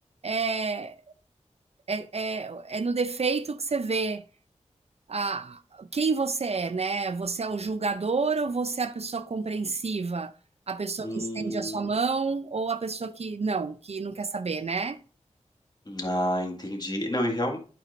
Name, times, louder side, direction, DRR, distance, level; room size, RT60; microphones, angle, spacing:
voice 1, 0.2-0.9 1.9-4.2 5.1-10.3 10.7-15.0, right 4 dB, 55° right, 0.5 m, -29 dB
voice 2, 11.0-11.9 15.9-17.6, equal, 35° left, 2.0 m, -29 dB
12.0 x 4.5 x 2.6 m
wide cardioid pair, 65°, 13 cm